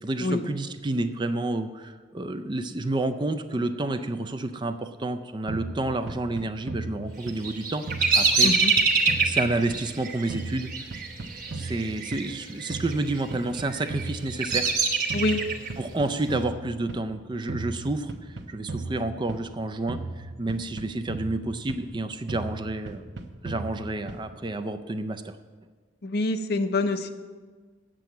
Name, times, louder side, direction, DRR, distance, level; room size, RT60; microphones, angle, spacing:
voice 1, 0.0-7.9 8.2-8.5 9.2-10.9 11.5-14.7 15.8-23.0 23.4-25.4, right 2 dB, 25° right, 9 dB, 0.4 m, -30 dB
sound 1, 5.5-7.6 7.9-10.0 10.3-12.4 12.7-14.8 15.1-17.1 17.5-19.6 19.9-22.0 22.3-24.4, right 2 dB, 65° right, 0.8 m, -37 dB
Bird vocalization bird call bird song, 7.2-12.3 12.5-13.1 13.7-15.7, right 4 dB, 45° right, 1.2 m, -25 dB
voice 2, 26.0-27.1, left 2 dB, 55° left, 9 dB, 0.6 m, -26 dB
8.2 x 7.6 x 8.8 m, 1.5 s
head